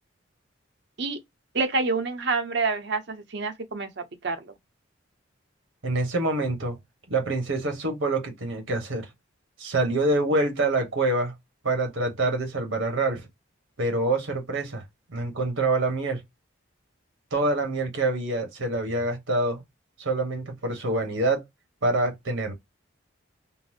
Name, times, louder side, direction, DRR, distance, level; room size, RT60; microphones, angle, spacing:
voice 1, 1.5-4.5, right 3 dB, 55° right, 0.6 m, -27 dB
voice 2, 5.8-6.8 7.1-9.1 9.6-11.3 11.6-13.2 13.8-14.8 15.1-16.2 17.3-19.6 20.0-21.4 21.8-22.5, right 2 dB, 75° right, 1.1 m, -26 dB
3.8 x 2.0 x 2.4 m
head